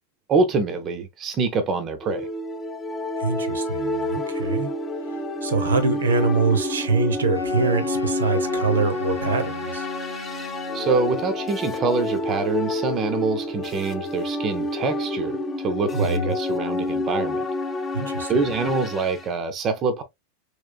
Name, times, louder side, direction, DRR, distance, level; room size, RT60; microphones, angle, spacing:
voice 1, 0.3-2.3 10.7-17.4 18.3-20.0, right 3 dB, 30° right, 0.6 m, -25 dB
sound 1, 2.0-19.3, left 1 dB, 15° left, 0.5 m, -29 dB
voice 2, 3.2-4.7 5.4-9.9 15.9-16.3 17.9-18.3, right 3 dB, 70° right, 0.7 m, -24 dB
Wind instrument woodwind instrument, 7.3-11.4, equal, 85° right, 0.4 m, -37 dB
3.4 x 3.0 x 2.3 m
figure-of-eight pair, 90°, 0 cm